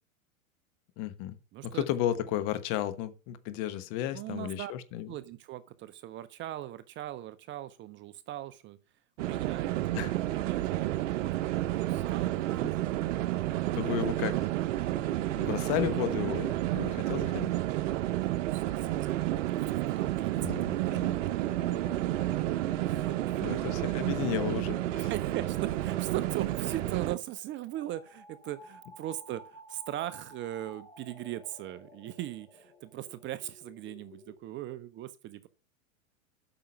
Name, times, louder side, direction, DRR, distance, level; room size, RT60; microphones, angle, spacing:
voice 1, 1.0-1.4 1.6-5.1 9.9-10.1 13.8-14.3 15.4-17.5 20.4-21.1 23.4-25.1, left 12 dB, 45° left, 1.2 m, -33 dB
voice 2, 1.5-1.9 4.1-4.7 5.1-8.8 9.2-11.3 11.7-14.1 18.1-21.2 22.9-23.8 25.0-35.5, right 13 dB, 30° right, 0.6 m, -40 dB
sound 1, 9.2-27.2, right 15 dB, 60° right, 0.8 m, -31 dB
sound 2, 21.1-34.4, left 2 dB, 15° left, 2.3 m, -52 dB
8.6 x 6.1 x 5.7 m
hypercardioid pair, 110°, 41 cm